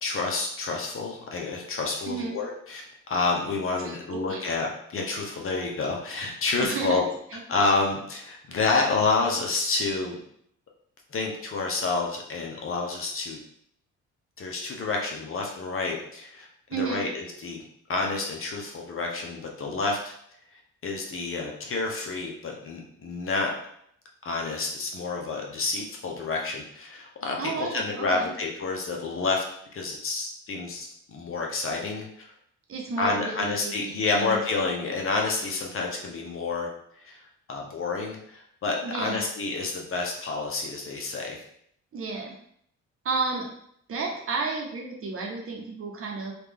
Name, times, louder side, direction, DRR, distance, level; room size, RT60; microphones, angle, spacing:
voice 1, 0.0-2.8 3.1-7.0 7.5-10.2 11.1-13.4 14.4-17.6 17.9-20.1 20.8-23.5 24.2-29.4 29.7-32.3 33.0-36.7 37.0-37.2 37.5-41.4, left 3 dB, 45° left, 0 dB, 0.8 m, -29 dB
voice 2, 2.1-2.4 3.8-4.4 6.6-7.0 7.3-7.4 16.7-17.0 27.4-28.3 32.7-34.5 38.8-39.3 41.9-42.3 43.0-43.5 43.9-46.3, right 4 dB, 45° right, 0 dB, 0.9 m, -32 dB
3.0 x 2.5 x 3.5 m, 0.69 s
cardioid pair, 90°, 30 cm